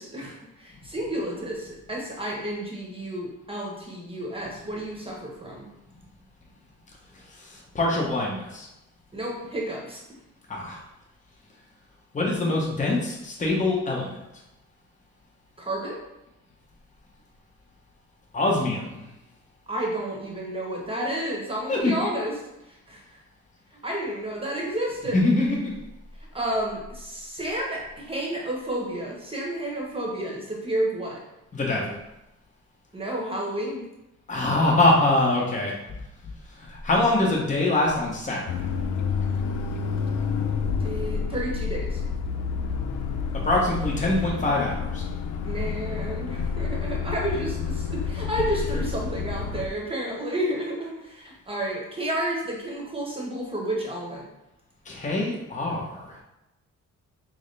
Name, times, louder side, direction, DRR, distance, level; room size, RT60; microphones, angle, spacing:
voice 1, 0.0-5.7 9.1-10.0 15.6-16.1 19.7-23.2 23.7-25.3 26.3-31.2 32.9-33.9 40.8-42.0 45.4-54.2, right 1 dB, 20° right, -1 dB, 1.0 m, -31 dB
voice 2, 7.3-8.7 10.5-10.8 12.1-14.2 18.3-19.0 21.7-21.9 25.1-25.7 31.5-32.0 34.3-35.7 36.6-38.5 43.4-45.0 54.9-56.2, left 2 dB, 25° left, -2 dB, 1.0 m, -24 dB
sound 1, 38.5-49.7, left 5 dB, 80° left, 0.5 m, -29 dB
6.2 x 2.1 x 3.3 m, 0.92 s
cardioid pair, 90°, 30 cm